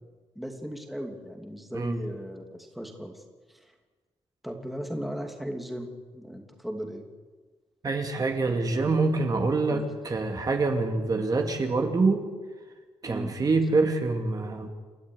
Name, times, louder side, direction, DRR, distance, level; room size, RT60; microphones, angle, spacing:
voice 1, 0.3-3.2 3.5-3.7 4.4-7.1 9.7-9.9 13.1-13.4, equal, ahead, 3 dB, 2.7 m, -37 dB
voice 2, 7.8-12.2 13.0-14.7, right 3 dB, 35° right, 4 dB, 2.4 m, -25 dB
29.5 x 13.0 x 9.7 m, 1.4 s
wide cardioid pair, 135°, 11 cm